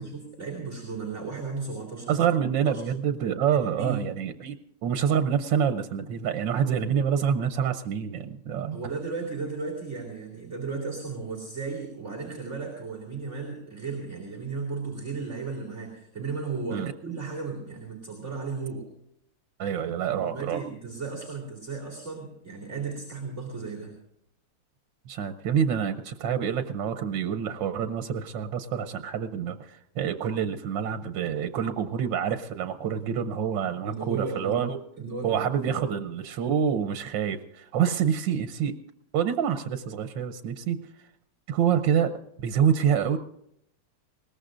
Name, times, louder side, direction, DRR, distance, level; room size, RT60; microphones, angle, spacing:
voice 1, 0.0-2.2 2.7-3.0 3.8-4.0 8.7-18.9 20.1-24.0 33.8-34.6 35.0-35.7, right 4 dB, 40° right, 0 dB, 2.9 m, -35 dB
voice 2, 2.1-8.8 16.7-16.9 19.6-20.6 25.1-34.8 35.2-38.8 39.1-40.8 41.5-42.1 42.4-43.2, right 8 dB, 85° right, 9 dB, 1.5 m, -27 dB
21.0 x 19.0 x 2.5 m, 0.74 s
omnidirectional pair, 2.0 m